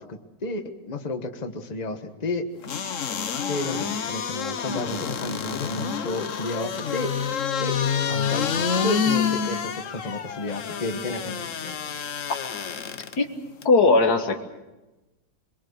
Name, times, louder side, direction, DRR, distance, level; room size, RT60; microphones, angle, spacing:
voice 1, 0.0-2.5 3.5-7.1 7.6-7.7 8.1-11.8, left 2 dB, 25° left, 6 dB, 1.4 m, -32 dB
sound 1, 2.6-13.1 13.6-13.7, left 7 dB, 60° left, 1.3 m, -28 dB
voice 2, 13.6-14.4, left 3 dB, 80° left, 5 dB, 2.3 m, -18 dB
24.0 x 23.0 x 6.7 m, 1.1 s
omnidirectional pair, 1.6 m